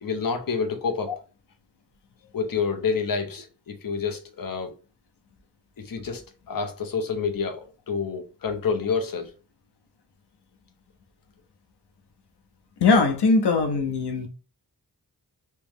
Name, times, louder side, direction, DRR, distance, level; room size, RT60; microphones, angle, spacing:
voice 1, 0.0-1.1 2.3-4.7 5.8-9.3, left 5 dB, 55° left, 0.8 m, -28 dB
voice 2, 12.8-14.3, left 3 dB, 85° left, 0.8 m, -20 dB
3.2 x 2.9 x 3.5 m
wide cardioid pair, 90°, 39 cm